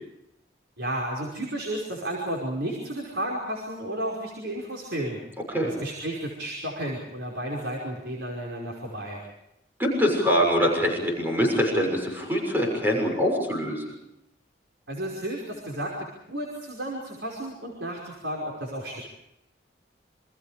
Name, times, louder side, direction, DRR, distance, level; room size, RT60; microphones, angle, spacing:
voice 1, 0.8-5.2 5.6-9.2 14.9-15.9 16.3-19.0, right 1 dB, 70° right, -1 dB, 5.4 m, -32 dB
voice 2, 9.8-13.8, equal, 10° right, 0 dB, 6.5 m, -24 dB
28.5 x 26.5 x 5.1 m, 0.85 s
head